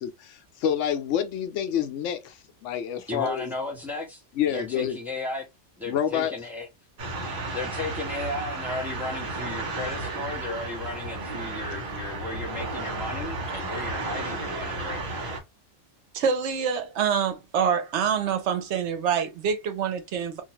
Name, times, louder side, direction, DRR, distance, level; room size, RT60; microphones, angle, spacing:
voice 1, 0.0-3.5 4.4-5.0 5.9-6.3, left 9 dB, 85° left, 0.9 m, -28 dB
voice 2, 3.1-4.2 4.5-5.4 5.8-6.6 7.5-15.4, left 2 dB, ahead, 0.8 m, -35 dB
sound 1, 7.0-15.4, right 2 dB, 50° right, 0.9 m, -33 dB
voice 3, 16.1-20.4, right 7 dB, 75° right, 0.9 m, -26 dB
2.5 x 2.3 x 2.8 m
omnidirectional pair, 1.2 m